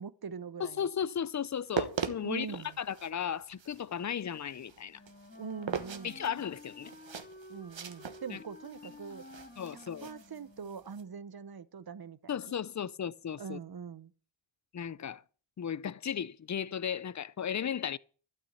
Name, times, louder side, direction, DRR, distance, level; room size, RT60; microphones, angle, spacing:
voice 1, 0.0-0.8 2.2-2.8 5.4-6.2 7.5-9.2 10.0-12.2 12.4-12.5 13.4-14.1, right 6 dB, 50° right, 0.8 m, -42 dB
voice 2, 0.6-5.0 6.0-6.9 8.3-8.4 9.6-10.1 12.3-13.6 14.7-15.2 15.6-18.0, left 8 dB, 40° left, 0.5 m, -35 dB
sound 1, 1.5-11.0, right 7 dB, 70° right, 1.3 m, -41 dB
Wind instrument woodwind instrument, 4.9-10.8, left 2 dB, 20° left, 2.0 m, -52 dB
12.5 x 5.9 x 8.6 m
wide cardioid pair, 85°, 47 cm